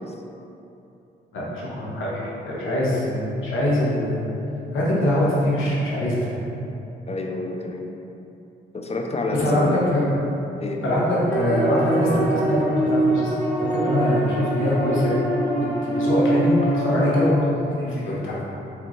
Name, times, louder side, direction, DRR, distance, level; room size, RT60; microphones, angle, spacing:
voice 1, 1.3-4.3 4.7-6.4 9.3-10.1 10.8-15.1 15.8-18.3, left 1 dB, 75° left, -6 dB, 1.1 m, -23 dB
voice 2, 2.6-3.0 7.1-7.9 8.7-9.7 10.6-10.8, left 2 dB, 30° left, 2 dB, 0.5 m, -28 dB
sound 1, 11.3-17.3, right 1 dB, 10° left, 1.5 m, -23 dB
3.6 x 3.3 x 3.1 m, 2.9 s
supercardioid pair, 50°, 21 cm